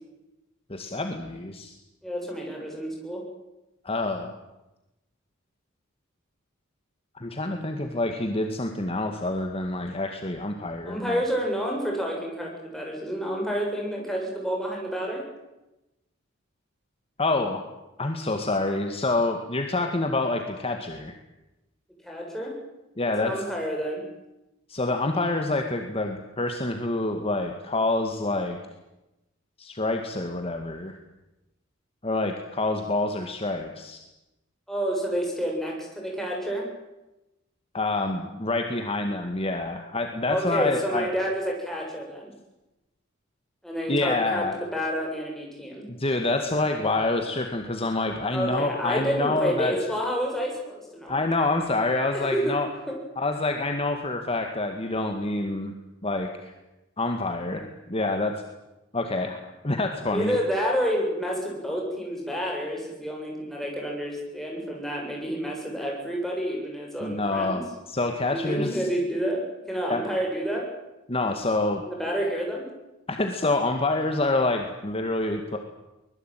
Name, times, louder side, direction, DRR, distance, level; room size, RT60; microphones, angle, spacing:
voice 1, 0.7-1.7 3.8-4.3 7.1-11.2 17.2-17.6 18.0-21.2 23.0-23.4 24.7-28.6 29.6-31.0 32.0-34.0 37.7-41.1 43.9-44.5 45.9-49.7 51.1-52.7 53.2-55.7 56.0-56.5 57.0-58.3 58.9-60.3 67.0-68.9 69.9-70.0 71.1-71.8 73.1-75.6, left 2 dB, 30° left, 4 dB, 2.0 m, -27 dB
voice 2, 2.0-3.2 10.9-15.2 22.0-22.5 23.2-24.0 34.7-36.6 40.3-42.3 43.6-45.9 48.3-51.2 52.1-52.6 52.9-53.0 60.1-67.6 68.3-70.7 71.9-72.7, equal, ahead, -1 dB, 7.7 m, -29 dB
24.0 x 21.5 x 9.2 m, 1.0 s
head